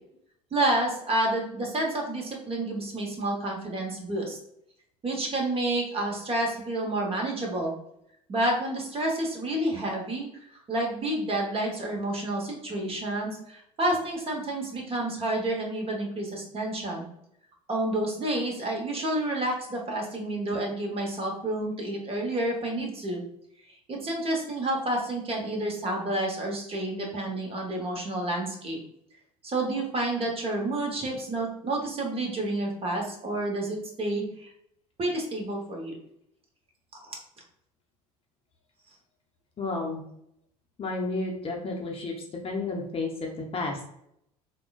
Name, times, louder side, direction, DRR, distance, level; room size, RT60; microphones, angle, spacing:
voice 1, 0.5-4.4 5.0-7.7 8.3-10.3 10.7-17.1 17.7-23.2 23.9-28.8 29.4-34.5 35.0-36.0 37.1-37.2, right 1 dB, 30° right, 0 dB, 0.9 m, -29 dB
voice 2, 39.6-40.0 40.8-43.8, left 3 dB, 30° left, 0 dB, 0.6 m, -32 dB
3.6 x 2.2 x 2.3 m, 0.74 s
figure-of-eight pair, 65°, 20 cm